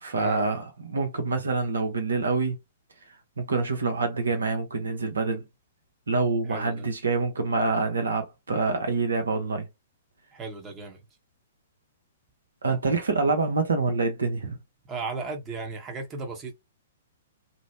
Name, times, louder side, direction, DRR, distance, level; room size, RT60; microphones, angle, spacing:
voice 1, 0.0-2.6 3.4-5.4 6.1-9.7 12.6-14.6, right 3 dB, 75° right, 0.7 m, -26 dB
voice 2, 6.5-6.9 10.3-11.0 14.9-16.5, right 3 dB, 20° right, 0.8 m, -35 dB
2.7 x 2.0 x 2.6 m
figure-of-eight pair, 115°, 0 cm